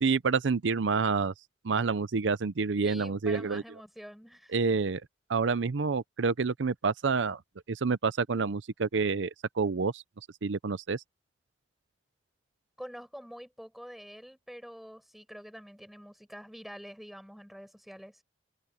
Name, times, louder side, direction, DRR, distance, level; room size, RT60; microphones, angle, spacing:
voice 1, 0.0-1.3 1.6-3.6 4.5-5.0 5.3-7.4 7.7-9.3 9.6-10.0 10.4-11.0, right 4 dB, 80° right, 0.6 m, -28 dB
voice 2, 2.8-4.6 12.8-18.2, equal, ahead, 6.0 m, -46 dB
head